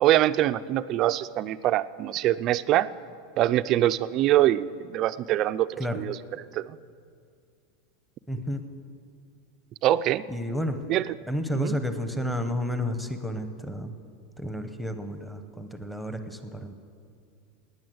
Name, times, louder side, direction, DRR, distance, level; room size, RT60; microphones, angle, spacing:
voice 1, 0.0-2.9 3.4-6.6 9.8-10.2 10.9-11.2 11.5-11.8, right 13 dB, 30° right, 14 dB, 0.4 m, -24 dB
voice 2, 8.3-8.6 10.3-10.8 11.3-13.9 14.4-16.7, equal, ahead, 8 dB, 0.8 m, -31 dB
18.5 x 9.4 x 7.9 m, 2.3 s
supercardioid pair, 170°, 0 cm